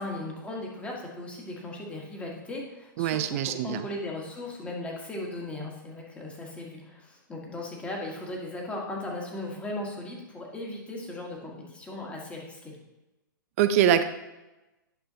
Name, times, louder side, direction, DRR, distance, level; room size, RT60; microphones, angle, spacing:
voice 1, 0.0-12.8, left 2 dB, 10° left, -1 dB, 1.4 m, -37 dB
voice 2, 3.0-3.8 13.6-14.0, right 10 dB, 40° right, 10 dB, 0.6 m, -23 dB
10.5 x 5.5 x 2.8 m, 1.0 s
hypercardioid pair, 135°, 11 cm